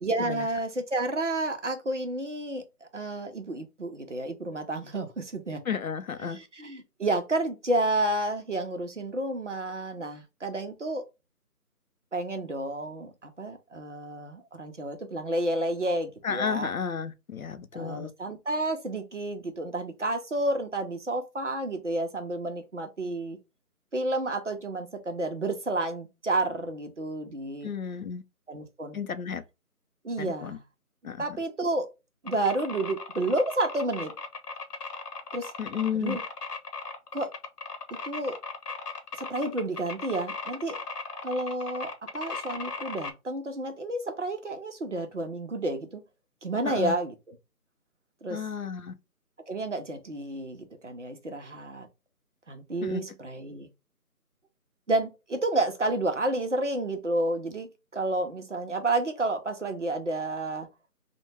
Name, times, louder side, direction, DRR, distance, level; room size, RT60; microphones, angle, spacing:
voice 1, 0.0-5.6 6.2-11.0 12.1-16.7 17.7-23.4 23.9-27.7 28.5-29.0 30.0-30.6 31.2-31.9 32.2-34.1 35.3-35.5 35.9-36.2 37.1-37.3 38.0-38.4 39.2-40.8 41.2-46.0 46.4-47.4 48.2-48.4 49.5-51.9 52.5-53.7 54.9-60.7, right 2 dB, 50° right, 0.6 m, -30 dB
voice 2, 5.7-6.4 16.2-18.1 27.6-28.2 28.9-29.4 30.2-30.6 31.0-31.2 35.6-36.2 46.6-46.9 48.3-48.9 52.8-53.0, left 7 dB, 65° left, 0.5 m, -32 dB
sound 1, 32.3-43.1, left 4 dB, 80° left, 0.9 m, -37 dB
3.4 x 2.2 x 3.1 m
figure-of-eight pair, 175°, 46 cm